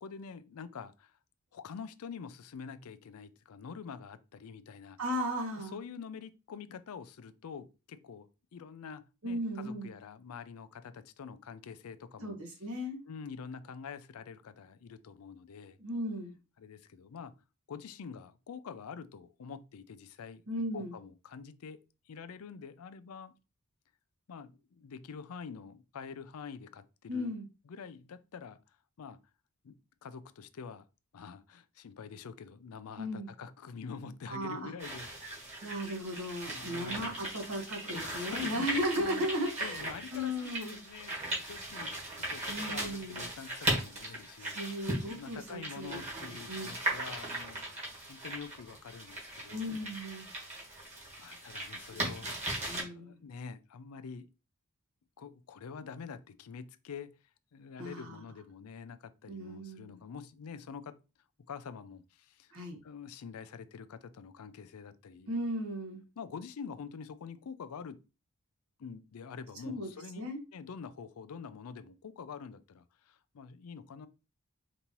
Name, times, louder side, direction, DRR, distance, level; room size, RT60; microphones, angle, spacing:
voice 1, 0.0-1.2 1.5-5.0 5.5-12.4 13.0-15.8 16.6-17.3 17.7-20.4 20.7-21.8 22.1-23.3 24.3-27.3 27.7-28.6 29.0-29.2 29.6-29.8 30.0-30.8 31.1-35.1 36.4-37.2 37.8-39.3 39.6-44.6 45.0-47.6 48.1-49.7 51.2-54.3 55.2-57.1 57.5-60.9 61.5-62.5 62.8-65.3 66.2-68.0 68.8-74.1, left 6 dB, 80° left, 0.4 m, -46 dB
voice 2, 5.0-5.7 9.2-9.9 12.2-13.0 15.8-16.3 20.5-20.9 27.1-27.5 33.0-33.3 34.3-34.7 35.6-40.7 42.5-43.2 44.4-46.7 49.5-50.3 51.9-52.1 52.7-53.2 57.8-58.2 59.3-60.0 62.5-62.8 65.3-66.0 69.6-69.9 70.2-70.4, equal, 70° right, 1.3 m, -36 dB
sound 1, 34.8-52.8, right 1 dB, 30° right, 1.6 m, -38 dB
5.2 x 2.7 x 2.9 m
head